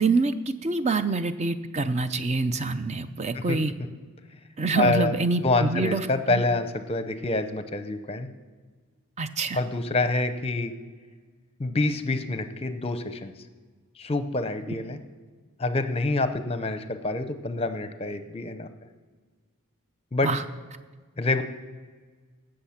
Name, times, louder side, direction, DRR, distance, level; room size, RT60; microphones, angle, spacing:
voice 1, 0.0-3.7 4.6-6.4 9.2-9.6 14.7-14.8 20.2-20.4, right 3 dB, 30° right, 11 dB, 0.5 m, -26 dB
voice 2, 4.8-5.1 5.4-8.3 9.5-10.7 11.6-13.3 14.0-15.0 15.6-18.7 20.1-20.3 21.2-21.4, left 2 dB, 25° left, 10 dB, 0.7 m, -26 dB
16.5 x 6.6 x 5.8 m, 1.5 s
head